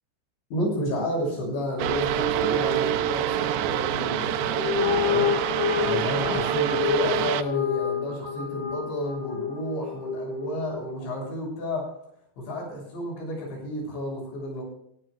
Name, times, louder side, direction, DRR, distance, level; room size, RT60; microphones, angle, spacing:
voice 1, 0.5-11.9 12.4-14.6, equal, 90° left, 0 dB, 9.2 m, -31 dB
sound 1, 1.8-7.4, right 11 dB, 80° right, 2.4 m, -26 dB
sound 2, 4.5-11.0, left 8 dB, 50° left, 3.4 m, -29 dB
18.5 x 17.5 x 2.2 m, 0.71 s
omnidirectional pair, 5.0 m